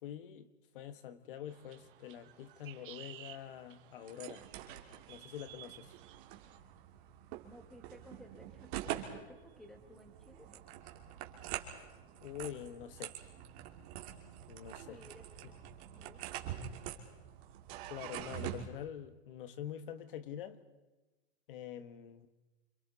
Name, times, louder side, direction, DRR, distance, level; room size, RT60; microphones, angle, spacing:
voice 1, 0.0-0.5 0.7-4.4 5.1-5.9 12.2-13.2 14.5-15.0 17.9-20.6 21.5-22.3, left 10 dB, 55° left, 11 dB, 1.7 m, -45 dB
sound 1, 1.5-6.6, right 13 dB, 55° right, 2.0 m, -56 dB
sound 2, 4.0-18.6, right 11 dB, 35° right, 2.5 m, -45 dB
voice 2, 7.4-10.6 14.9-15.2 15.9-16.2 18.1-18.4, equal, ahead, 4 dB, 1.8 m, -56 dB
28.5 x 27.0 x 4.1 m, 1.2 s
supercardioid pair, 170°, 32 cm